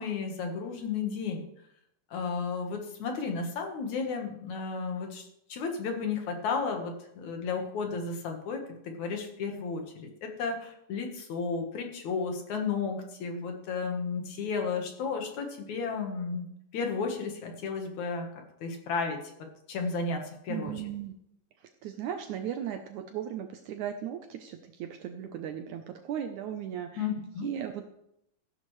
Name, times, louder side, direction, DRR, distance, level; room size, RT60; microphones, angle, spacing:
voice 1, 0.0-1.4 2.1-16.5 16.7-19.2 19.7-20.7 27.0-27.5, left 5 dB, 60° left, 3 dB, 2.6 m, -33 dB
voice 2, 20.5-21.1 21.8-27.1 27.4-27.9, right 9 dB, 75° right, 5 dB, 1.9 m, -37 dB
15.5 x 11.5 x 3.2 m, 0.77 s
omnidirectional pair, 4.1 m